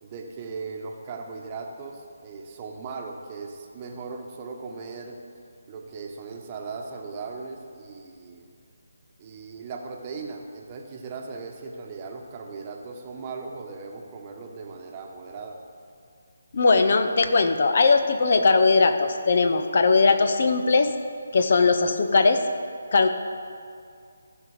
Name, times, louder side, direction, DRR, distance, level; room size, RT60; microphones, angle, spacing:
voice 1, 0.0-5.2 5.7-8.5 9.2-15.6, right 4 dB, 30° right, 2 dB, 1.1 m, -38 dB
voice 2, 16.5-20.9 21.3-22.4 22.9-23.1, left 4 dB, 55° left, 8 dB, 0.8 m, -19 dB
15.0 x 5.3 x 5.0 m, 2.2 s
figure-of-eight pair, 150°, 0 cm